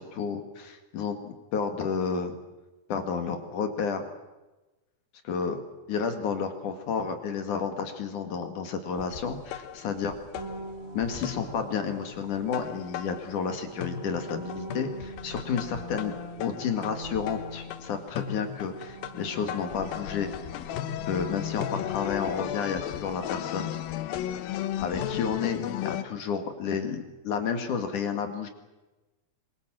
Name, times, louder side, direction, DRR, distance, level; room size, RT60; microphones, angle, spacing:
voice 1, 0.0-2.4 2.9-4.1 5.2-5.6 5.9-10.1 10.9-20.3 21.0-23.7 24.8-28.5, left 6 dB, 60° left, 6 dB, 3.4 m, -31 dB
sound 1, 9.0-13.5 13.8-26.0, left 11 dB, 85° left, 2.8 m, -36 dB
sound 2, 10.3-12.8 13.4-18.3 18.5-23.5, equal, 85° right, 6.7 m, -44 dB
25.0 x 22.5 x 7.6 m, 1.1 s
omnidirectional pair, 4.1 m